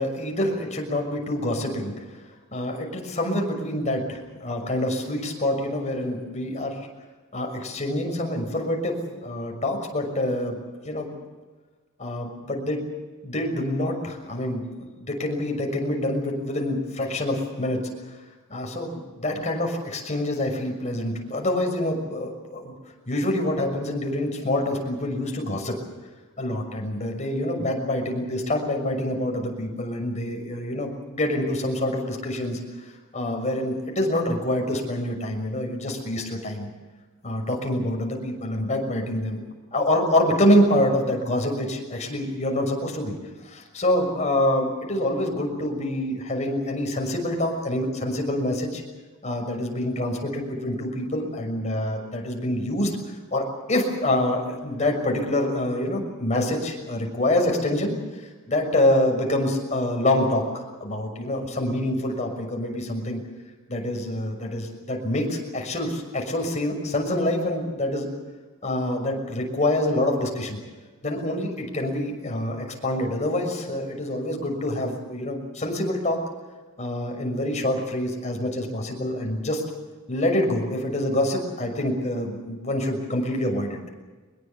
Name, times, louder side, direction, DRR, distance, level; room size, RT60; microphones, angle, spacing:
voice 1, 0.0-1.9 2.5-6.8 7.3-11.1 12.0-12.8 13.2-17.8 18.5-22.7 23.1-25.8 26.4-32.6 33.1-36.7 37.2-39.4 39.7-43.1 43.4-48.8 49.2-52.9 53.3-57.9 58.5-60.4 60.8-63.2 63.7-68.1 68.6-70.6 71.0-76.2 76.8-79.6 80.1-83.8, left 1 dB, 35° left, 2 dB, 6.2 m, -26 dB
24.0 x 21.5 x 7.1 m, 1.3 s
head